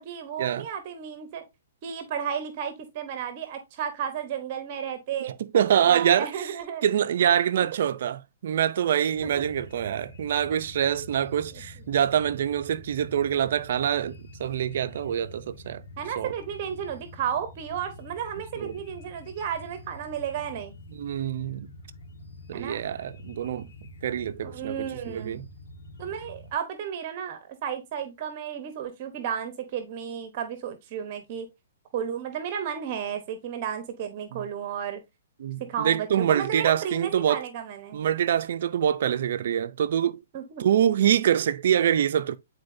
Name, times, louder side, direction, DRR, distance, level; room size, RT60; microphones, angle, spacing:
voice 1, 0.0-1.4 1.8-5.3 5.9-6.8 7.2-7.6 9.2-9.3 11.5-11.6 16.0-20.7 22.5-22.8 24.4-25.4 26.0-31.5 31.9-35.0 35.6-38.0 40.3-40.7, right 8 dB, 35° right, 1.0 m, -33 dB
voice 2, 5.2-6.5 6.8-15.8 16.2-16.3 18.6-18.7 20.9-21.7 22.5-23.7 24.0-25.5 34.3-34.4 35.4-37.4 37.9-40.2 40.6-42.4, right 9 dB, 55° right, 0.6 m, -25 dB
sound 1, 9.1-26.5, left 2 dB, 85° left, 2.0 m, -46 dB
9.6 x 4.2 x 2.6 m
hypercardioid pair, 160°, 0 cm